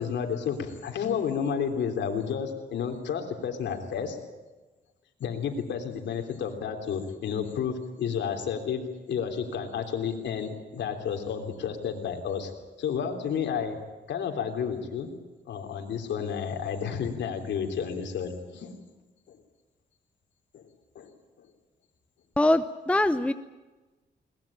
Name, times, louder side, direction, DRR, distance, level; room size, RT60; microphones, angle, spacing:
voice 1, 0.0-4.2 5.2-8.8 9.1-12.5 12.8-13.8 14.1-15.1 15.5-18.7 19.3-19.4 20.5-20.7 20.9-21.1, left 7 dB, 85° left, 4 dB, 3.5 m, -31 dB
voice 2, 22.4-23.3, left 1 dB, 5° left, 11 dB, 0.8 m, -23 dB
22.0 x 20.0 x 8.9 m, 1.2 s
cardioid pair, 95°, 18 cm